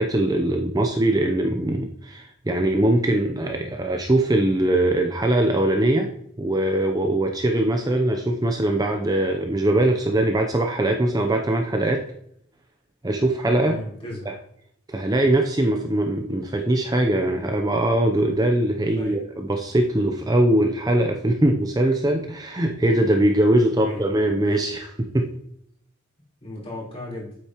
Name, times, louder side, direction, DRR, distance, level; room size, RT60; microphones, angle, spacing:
voice 1, 0.0-6.1 6.4-12.0 13.0-13.8 14.3-14.4 14.9-25.3, right 1 dB, 20° right, 3 dB, 0.6 m, -21 dB
voice 2, 13.6-14.3 19.0-19.2 23.8-24.0 26.4-27.4, left 1 dB, 30° left, -5 dB, 3.9 m, -35 dB
8.8 x 8.1 x 3.0 m, 0.71 s
head